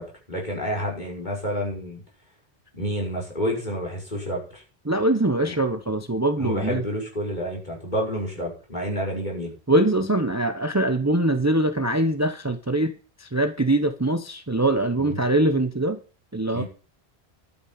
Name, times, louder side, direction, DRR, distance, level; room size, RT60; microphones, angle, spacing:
voice 1, 0.0-2.0 2.7-4.6 5.4-5.6 6.4-9.5 15.0-15.1 16.5-16.6, equal, 45° left, -2 dB, 6.0 m, -29 dB
voice 2, 4.8-6.9 9.7-16.0 16.3-16.6, right 1 dB, 15° right, 8 dB, 0.9 m, -23 dB
11.5 x 9.3 x 5.7 m, 0.36 s
omnidirectional pair, 1.1 m